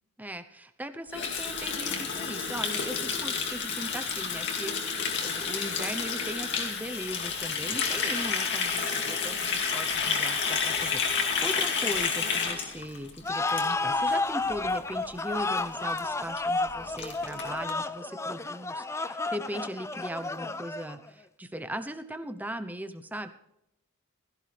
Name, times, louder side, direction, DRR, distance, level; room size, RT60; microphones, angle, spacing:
voice 1, 0.2-23.3, equal, 5° right, 9 dB, 0.8 m, -39 dB
Water tap faucet, 1.1-14.1 14.4-14.7 15.0-15.3 15.6-15.7 15.9-16.0 16.4-16.5 16.7-17.7, left 5 dB, 50° left, 2.3 m, -30 dB
sound 1, 13.2-21.1, left 3 dB, 10° left, 0.4 m, -31 dB
16.5 x 14.5 x 3.4 m, 0.79 s
head